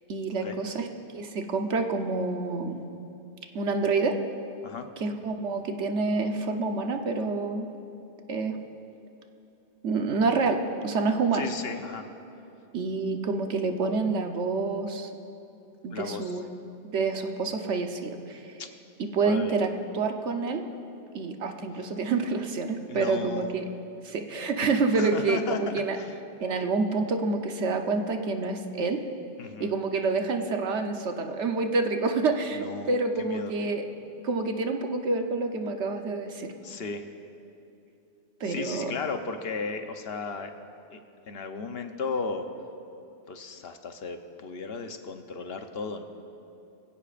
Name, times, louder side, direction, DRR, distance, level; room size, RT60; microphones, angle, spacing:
voice 1, 0.1-0.9 1.1-2.9 3.5-4.2 5.0-7.7 8.3-8.6 9.8-11.5 12.7-15.1 15.8-16.5 16.8-18.5 19.0-20.6 21.1-23.6 24.0-26.0 26.4-29.0 29.6-33.9 34.2-36.5 38.4-38.9, right 3 dB, 90° right, 5 dB, 1.2 m, -28 dB
voice 2, 11.3-12.0 15.9-16.4 18.6-18.7 19.2-19.6 22.9-23.5 24.9-25.6 25.9-26.1 29.4-29.7 32.5-32.9 33.2-33.5 36.6-37.1 38.4-40.5 40.9-41.0 41.3-42.4 43.3-46.0, left 4 dB, 65° left, 6 dB, 1.0 m, -35 dB
24.0 x 15.5 x 2.5 m, 2.7 s
omnidirectional pair, 1.1 m